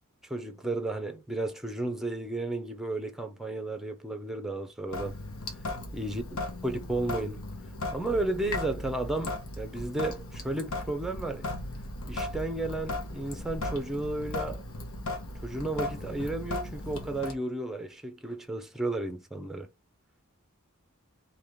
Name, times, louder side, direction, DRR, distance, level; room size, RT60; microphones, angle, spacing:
voice 1, 0.3-5.2 5.9-7.6 7.9-11.5 12.1-14.6 15.4-19.7, right 2 dB, ahead, 0.7 m, -33 dB
Sink (filling or washing) / Drip, 4.9-17.3, left 2 dB, 70° left, 1.2 m, -37 dB
4.9 x 2.8 x 3.7 m
head